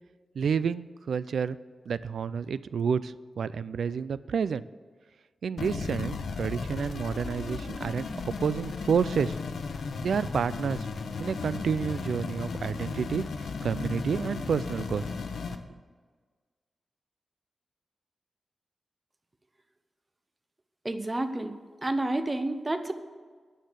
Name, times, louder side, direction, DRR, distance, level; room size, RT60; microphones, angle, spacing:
voice 1, 0.4-1.6 1.9-4.6 5.4-9.4 10.0-10.9 11.2-13.2 13.6-15.0 15.5-15.6, right 6 dB, 85° right, 16 dB, 0.3 m, -29 dB
sound 1, 5.6-15.6, left 4 dB, 75° left, 0.8 m, -35 dB
voice 2, 20.8-21.6 21.8-22.9, right 2 dB, 20° right, 9 dB, 0.7 m, -29 dB
10.0 x 6.5 x 8.1 m, 1.5 s
wide cardioid pair, 145°, 0 cm